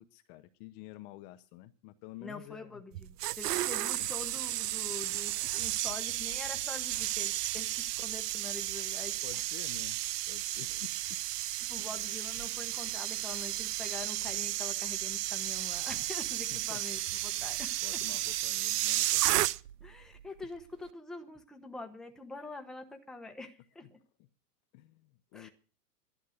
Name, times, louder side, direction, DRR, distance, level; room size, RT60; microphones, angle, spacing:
voice 1, 0.0-2.8 4.0-4.1 7.6-7.7 9.2-10.0 10.3-11.2 11.8-11.9 16.5-16.8 17.8-19.5 24.7-25.5, left 15 dB, 35° left, 11 dB, 0.8 m, -49 dB
voice 2, 2.2-9.4 11.6-18.0 19.8-24.0 25.3-25.5, left 3 dB, ahead, 4 dB, 1.0 m, -45 dB
sound 1, 2.9-19.9 20.2-20.4, right 15 dB, 75° right, 0.7 m, -33 dB
12.0 x 11.5 x 6.4 m, 0.38 s
supercardioid pair, 145°, 48 cm